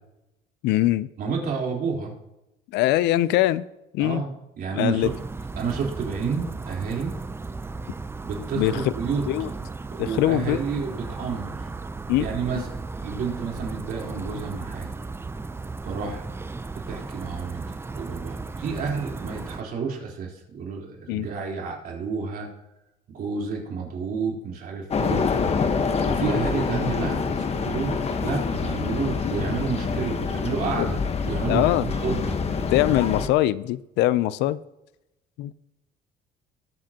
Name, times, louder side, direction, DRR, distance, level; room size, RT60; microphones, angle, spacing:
voice 1, 0.6-1.1 2.7-3.6 3.9-4.2 4.8-5.1 8.6-8.8 9.3-9.5 10.2-10.6 12.1-12.2 21.1-21.3 30.8-30.9 31.5-31.8 32.7-34.6 35.4-35.5, left 14 dB, 85° left, 0.5 m, -22 dB
voice 2, 1.2-2.1 4.0-5.2 5.6-7.1 8.2-9.6 9.9-11.7 12.2-12.7 13.0-14.9 15.8-16.2 16.7-22.5 23.1-25.3 26.1-31.0 31.2-32.4, right 5 dB, 60° right, 3.7 m, -30 dB
sound 1, 5.0-19.6, right 3 dB, 15° right, 0.5 m, -35 dB
sound 2, 24.9-33.3, left 5 dB, 40° left, 1.2 m, -26 dB
19.5 x 7.6 x 2.9 m
cardioid pair, 110°, 17 cm